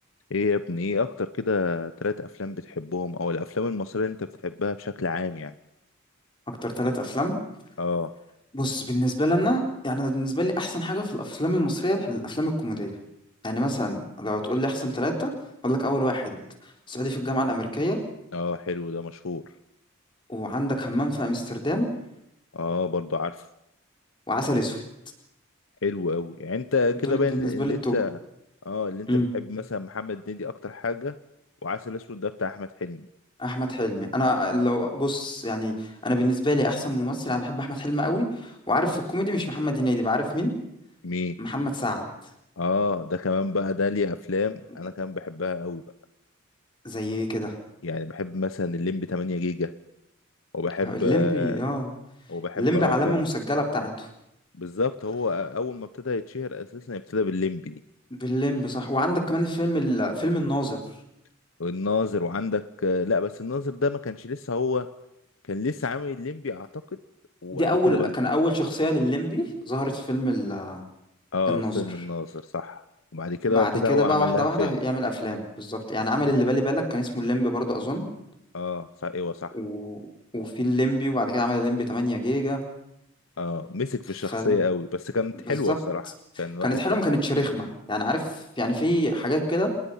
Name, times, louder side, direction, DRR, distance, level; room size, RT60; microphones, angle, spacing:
voice 1, 0.3-5.5 7.8-8.1 18.3-19.4 22.5-23.5 25.8-28.2 28.6-31.1 31.6-33.1 41.0-41.3 42.6-45.8 47.8-49.7 50.5-51.6 52.3-53.2 54.6-57.8 61.6-64.9 65.5-66.7 67.4-68.1 71.3-72.8 73.1-74.8 78.5-79.6 83.4-86.1 86.4-87.0, left 4 dB, 70° left, 12 dB, 0.8 m, -28 dB
voice 2, 6.6-7.4 8.5-12.9 13.4-15.3 15.6-16.4 16.9-18.0 20.3-21.9 24.3-24.8 27.0-28.0 29.1-29.3 33.4-40.5 41.4-42.0 46.8-47.5 50.8-51.9 52.6-54.1 58.1-60.8 67.5-70.8 71.5-71.8 73.5-78.1 79.5-80.0 80.3-82.6 84.3-84.6 85.5-85.8 86.6-89.7, equal, 25° left, 2 dB, 4.0 m, -26 dB
27.5 x 21.0 x 5.7 m, 0.81 s
head